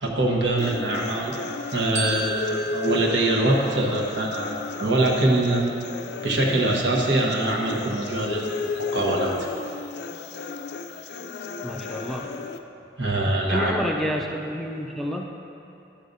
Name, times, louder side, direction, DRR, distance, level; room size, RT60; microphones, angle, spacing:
voice 1, 0.0-1.3 1.7-4.5 4.8-5.6 6.2-8.5 8.7-9.3 13.0-13.8, right 2 dB, 90° right, -2 dB, 1.1 m, -23 dB
sound 1, 0.6-12.6, left 4 dB, 75° left, 0.3 m, -34 dB
Glockenspiel, 1.9-4.4, right 2 dB, 15° right, 1.0 m, -34 dB
voice 2, 11.6-12.3 13.5-15.3, equal, ahead, -1 dB, 0.4 m, -29 dB
11.5 x 6.6 x 2.6 m, 2.8 s
head